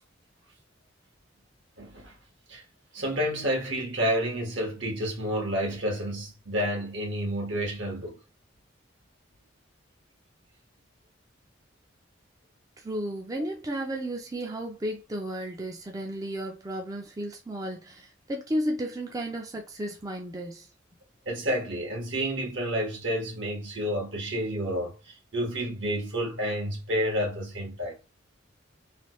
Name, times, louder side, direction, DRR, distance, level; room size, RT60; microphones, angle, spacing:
voice 1, 1.8-2.2 2.5-2.6 2.9-8.2 21.2-28.0, equal, 75° right, 1.4 m, -30 dB
voice 2, 12.8-20.7, right 1 dB, 20° right, 0.4 m, -33 dB
3.2 x 2.3 x 3.0 m
head